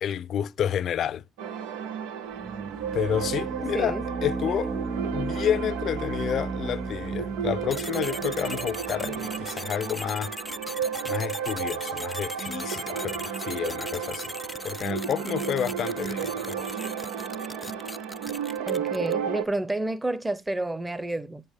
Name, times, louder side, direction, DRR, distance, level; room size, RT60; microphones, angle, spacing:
voice 1, 0.0-1.2 2.9-4.7 5.1-10.3 11.0-14.3 14.6-16.8, left 9 dB, 60° left, 0.6 m, -30 dB
sound 1, 1.4-19.4, right 7 dB, 85° right, 0.8 m, -33 dB
sound 2, 2.3-9.5, right 4 dB, 45° right, 0.7 m, -35 dB
voice 2, 3.7-4.0 4.4-4.5 18.7-21.4, right 2 dB, 15° right, 0.9 m, -30 dB
sound 3, 7.7-19.3, left 2 dB, 15° left, 0.4 m, -39 dB
7.5 x 6.7 x 3.6 m
supercardioid pair, 70°, 0 cm